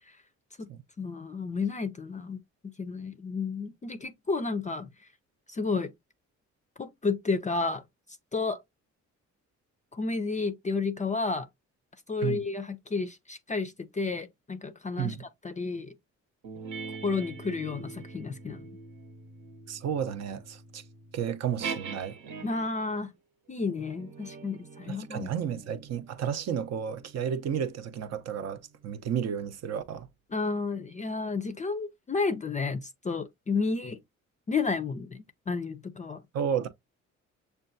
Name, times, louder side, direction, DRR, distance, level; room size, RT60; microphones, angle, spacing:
voice 1, 1.0-4.9 5.5-5.9 6.8-7.8 8.3-8.6 9.9-11.5 12.1-15.9 17.0-18.6 22.4-23.1 23.5-25.3 30.3-34.0 34.5-36.2, left 4 dB, 25° left, 0.4 m, -31 dB
sound 1, 16.4-22.8 23.6-28.5, right 5 dB, 80° right, 1.1 m, -44 dB
voice 2, 19.7-20.8 21.1-22.2 24.9-30.1 36.3-36.7, right 8 dB, 60° right, 0.6 m, -32 dB
6.6 x 2.3 x 2.5 m
cardioid pair, 90°, 30 cm